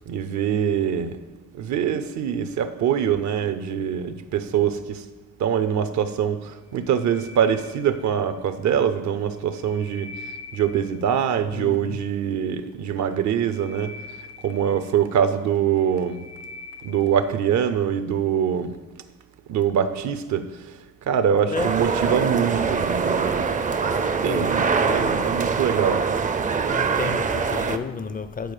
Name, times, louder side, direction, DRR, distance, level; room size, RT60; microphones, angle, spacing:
voice 1, 0.1-1.2 1.6-5.0 5.4-10.1 10.5-13.9 14.4-16.2 16.8-18.7 19.5-20.5 21.1-23.5 23.9-26.0, right 8 dB, 70° right, 0.6 m, -24 dB
sound 1, 6.6-8.3 9.3-11.1 13.1-15.2 15.7-17.2, left 3 dB, 90° left, 2.2 m, -43 dB
voice 2, 11.5-12.0 21.5-22.4 24.2-25.6 26.7-28.5, left 5 dB, 30° left, 0.4 m, -33 dB
sound 2, 21.5-27.8, right 5 dB, 25° right, 0.4 m, -23 dB
9.2 x 4.5 x 4.9 m
cardioid pair, 90°, 30 cm